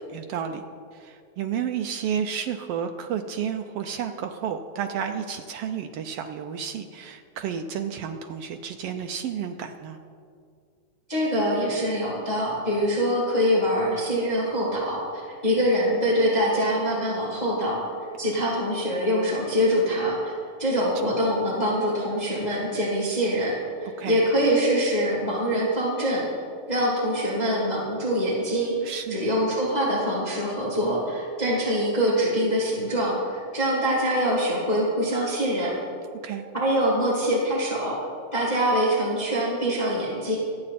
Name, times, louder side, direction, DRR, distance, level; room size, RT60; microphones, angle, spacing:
voice 1, 0.1-0.6 0.9-10.0 21.0-21.2 24.0-24.2 28.8-29.2 36.2-36.4, right 8 dB, 80° right, 6 dB, 1.3 m, -31 dB
voice 2, 11.1-15.0 15.4-17.8 18.2-20.3 20.6-26.3 26.7-28.7 29.1-35.7 36.6-38.0 38.3-40.4, equal, 15° left, -6 dB, 2.4 m, -24 dB
26.0 x 8.7 x 4.2 m, 2.3 s
omnidirectional pair, 3.4 m